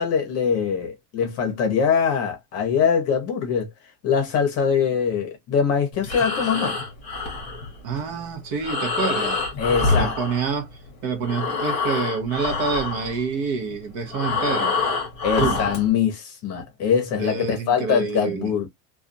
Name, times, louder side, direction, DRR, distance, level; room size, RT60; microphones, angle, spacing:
voice 1, 0.0-3.7 4.0-6.8 9.6-10.1 15.2-18.7, left 6 dB, 30° left, 0.8 m, -23 dB
Breathing, 5.9-10.9 11.2-15.9, left 4 dB, 15° left, 1.1 m, -26 dB
voice 2, 7.8-9.4 9.7-14.8 15.4-15.8 17.2-18.5, right 5 dB, 45° right, 0.8 m, -27 dB
2.5 x 2.4 x 2.5 m
cardioid pair, 175°, 50 cm